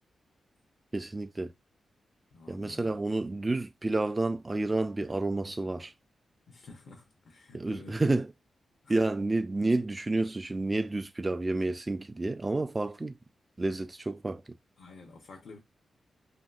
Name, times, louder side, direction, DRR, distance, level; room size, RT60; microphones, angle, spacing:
voice 1, 0.9-1.5 2.5-5.9 7.5-8.3 8.9-13.1 13.6-14.4, right 2 dB, 20° right, 0.4 m, -30 dB
voice 2, 2.3-3.0 6.5-8.0 8.8-9.0 14.8-15.6, left 3 dB, 75° left, 0.7 m, -51 dB
2.9 x 2.6 x 2.4 m
wide cardioid pair, 105°, 0 cm